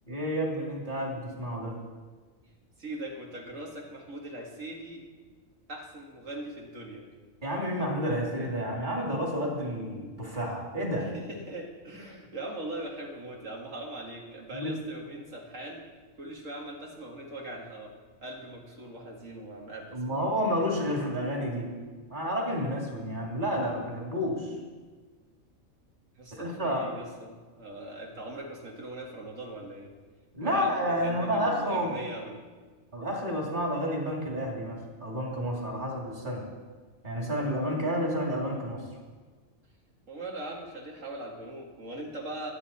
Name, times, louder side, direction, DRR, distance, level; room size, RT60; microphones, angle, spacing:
voice 1, 0.1-1.8 7.4-11.1 14.5-14.8 19.9-21.7 22.1-24.5 26.3-26.9 30.3-31.9 32.9-36.5 37.0-38.8, equal, 35° right, -1 dB, 2.9 m, -30 dB
voice 2, 2.8-5.0 5.7-7.1 11.0-15.8 16.2-17.9 18.2-20.3 26.2-29.9 30.4-32.4 37.6-38.0 40.1-42.5, right 1 dB, 70° right, -1 dB, 2.4 m, -41 dB
21.0 x 9.4 x 4.3 m, 1.4 s
omnidirectional pair, 1.4 m